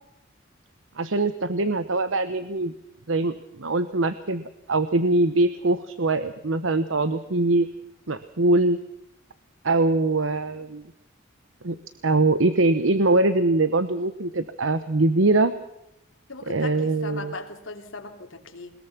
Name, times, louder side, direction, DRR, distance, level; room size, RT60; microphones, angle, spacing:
voice 1, 1.0-2.7 3.1-4.4 4.7-7.7 8.1-8.8 9.6-10.9 11.6-11.8 12.0-15.5 16.5-17.3, right 2 dB, 75° right, 12 dB, 1.0 m, -22 dB
voice 2, 16.3-18.7, left 3 dB, 75° left, 5 dB, 3.0 m, -38 dB
21.5 x 21.0 x 5.9 m, 0.84 s
head